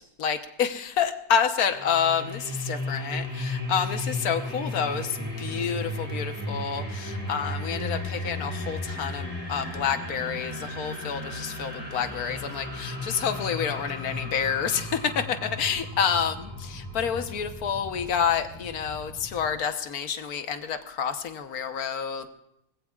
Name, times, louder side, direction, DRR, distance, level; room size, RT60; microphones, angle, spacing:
voice 1, 0.0-16.3 16.7-22.3, left 7 dB, 70° left, 7 dB, 1.6 m, -28 dB
sound 1, 1.5-19.5, left 1 dB, 5° right, 7.9 m, -35 dB
25.5 x 20.0 x 2.4 m, 0.80 s
omnidirectional pair, 1.6 m